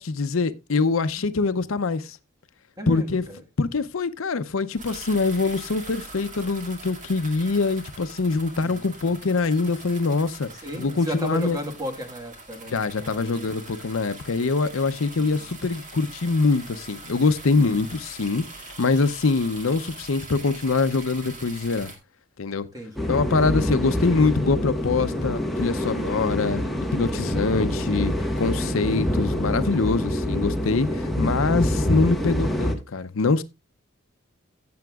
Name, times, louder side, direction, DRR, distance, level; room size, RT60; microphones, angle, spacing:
voice 1, 0.0-2.2 2.9-3.2 3.6-10.5 10.8-11.6 12.7-18.4 18.8-21.9 22.4-22.7 23.1-33.4, left 4 dB, 70° left, 0.6 m, -24 dB
voice 2, 2.8-3.4 8.6-8.9 10.5-13.4 15.2-15.6 22.7-23.2 27.3-27.6, equal, 15° right, 1.5 m, -35 dB
sound 1, 4.8-22.0, right 2 dB, 35° right, 2.2 m, -43 dB
sound 2, 23.0-32.8, equal, ahead, 1.3 m, -26 dB
15.5 x 7.8 x 2.3 m
head